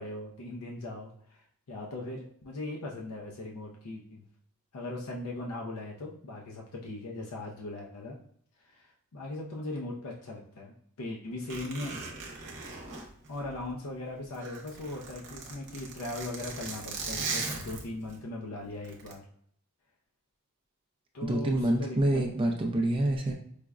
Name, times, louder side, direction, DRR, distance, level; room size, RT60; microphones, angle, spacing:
voice 1, 0.0-4.3 4.7-8.2 8.6-12.0 13.3-19.2 21.1-22.2, left 2 dB, 75° left, -1 dB, 0.5 m, -39 dB
Zipper (clothing), 11.5-13.9 14.2-18.2 18.8-19.1, right 4 dB, 50° right, 0.8 m, -38 dB
voice 2, 21.2-23.3, right 1 dB, 25° right, 2 dB, 0.3 m, -27 dB
4.8 x 2.1 x 2.3 m, 0.64 s
head